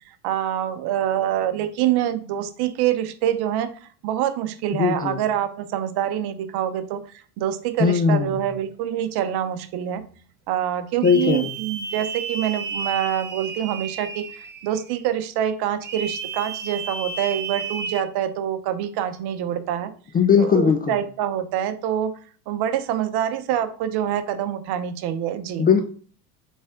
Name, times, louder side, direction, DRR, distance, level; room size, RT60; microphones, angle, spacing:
voice 1, 0.2-7.0 7.4-10.0 10.5-19.9 20.4-22.1 22.5-25.7, right 10 dB, 55° right, 10 dB, 0.7 m, -25 dB
voice 2, 4.7-5.2 7.8-8.4 11.0-11.5 20.1-21.0 25.6-25.8, left 6 dB, 20° left, 6 dB, 0.3 m, -19 dB
sound 1, 11.0-14.9 15.8-18.0, right 4 dB, 25° right, 0.7 m, -32 dB
4.1 x 3.4 x 3.6 m, 0.42 s
supercardioid pair, 95°, 46 cm